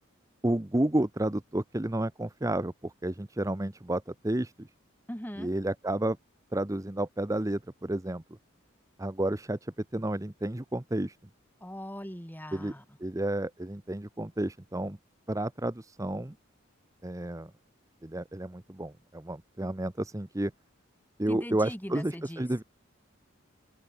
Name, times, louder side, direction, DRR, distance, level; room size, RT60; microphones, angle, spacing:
voice 1, 0.4-4.7 5.4-6.2 6.5-8.2 9.0-11.2 12.5-12.7 13.0-15.0 15.3-16.4 17.0-17.5 18.0-20.5 21.2-22.6, right 1 dB, 15° right, 0.7 m, -31 dB
voice 2, 5.1-5.5 11.6-12.8 21.3-22.5, equal, 10° left, 7.3 m, -40 dB
open air
head